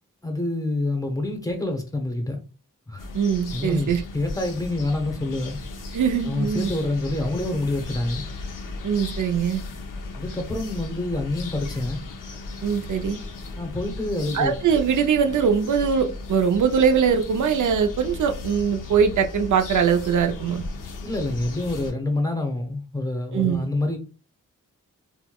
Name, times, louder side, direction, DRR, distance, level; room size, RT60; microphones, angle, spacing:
voice 1, 0.2-2.4 2.9-3.1 3.5-5.6 6.2-8.2 10.2-12.0 13.6-14.5 21.0-24.0, left 2 dB, 10° left, 0.7 m, -27 dB
sound 1, 3.0-21.9, left 3 dB, 75° left, 0.7 m, -36 dB
voice 2, 3.1-4.0 5.9-6.7 8.8-9.6 12.6-13.2 14.3-20.6 23.3-23.7, right 7 dB, 65° right, 0.5 m, -22 dB
4.4 x 2.1 x 2.2 m
wide cardioid pair, 135°, 32 cm